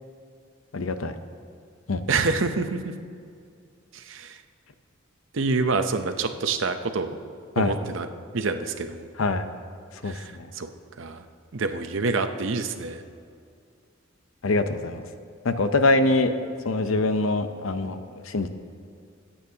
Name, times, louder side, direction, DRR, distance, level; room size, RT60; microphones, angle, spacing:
voice 1, 0.7-1.1 1.9-2.2 7.6-7.8 9.2-9.4 10.0-10.5 14.4-15.1 15.4-16.3 16.6-18.5, left 2 dB, 75° left, 9 dB, 0.7 m, -24 dB
voice 2, 2.1-3.0 3.9-4.4 5.3-7.2 7.6-8.1 8.3-9.0 10.0-10.7 11.0-11.2 11.5-13.0, right 4 dB, 65° right, 8 dB, 0.7 m, -27 dB
24.0 x 8.8 x 2.8 m, 2.3 s
head